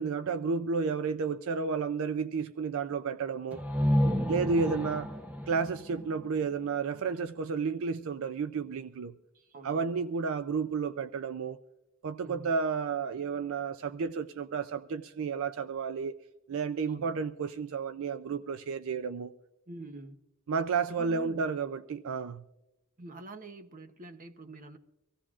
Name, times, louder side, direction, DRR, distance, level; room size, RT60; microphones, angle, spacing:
voice 1, 0.0-3.6 4.3-5.1 5.5-9.1 9.6-11.6 12.0-16.1 16.5-19.3 20.5-22.4, right 5 dB, 65° right, 0.4 m, -32 dB
sound 1, 3.5-7.2, equal, 5° right, 0.7 m, -31 dB
voice 2, 4.0-4.6 9.3-10.0 12.2-12.5 16.9-17.1 19.7-20.2 20.9-21.5 23.0-24.8, right 2 dB, 40° right, 0.8 m, -46 dB
24.0 x 15.5 x 2.4 m
head